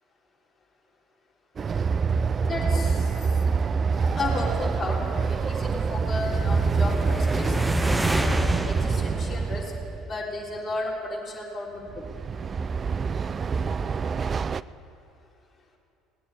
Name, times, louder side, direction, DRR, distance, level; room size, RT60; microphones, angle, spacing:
Train, 1.6-10.0 11.9-14.6, right 5 dB, 35° right, 0.3 m, -26 dB
voice 1, 2.4-3.4 4.1-8.4 8.6-9.7 10.1-12.1, left 2 dB, 30° left, -3 dB, 3.6 m, -34 dB
sound 1, 5.1-10.4, right 1 dB, 10° right, 0.8 m, -29 dB
18.5 x 8.6 x 8.0 m, 2.5 s
figure-of-eight pair, 60°, 0 cm